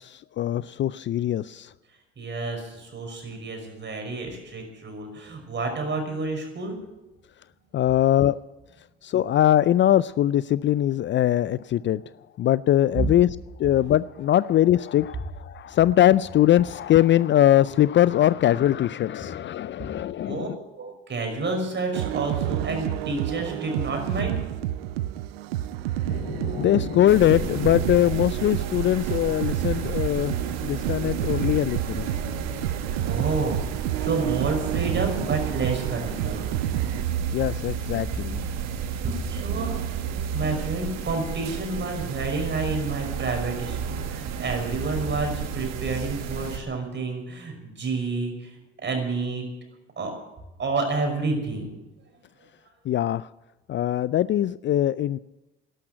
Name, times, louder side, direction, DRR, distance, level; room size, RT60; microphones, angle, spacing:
voice 1, 0.0-1.7 7.7-8.4 9.0-12.0 12.4-13.3 13.6-20.6 26.1-32.7 37.3-38.4 52.9-53.3 53.7-55.2, left 12 dB, 40° left, 18 dB, 0.4 m, -22 dB
voice 2, 2.2-6.8 13.0-13.1 20.3-20.5 20.8-24.4 33.0-36.6 39.0-39.7 40.3-48.5 48.8-49.5 50.0-50.1 50.6-51.7, right 3 dB, 40° right, 3 dB, 5.7 m, -29 dB
sound 1, 21.9-37.0, right 14 dB, 85° right, 0.5 m, -30 dB
sound 2, 27.1-46.6, right 7 dB, 65° right, 1.6 m, -32 dB
12.5 x 11.5 x 9.1 m, 1.0 s
hypercardioid pair, 60°, 29 cm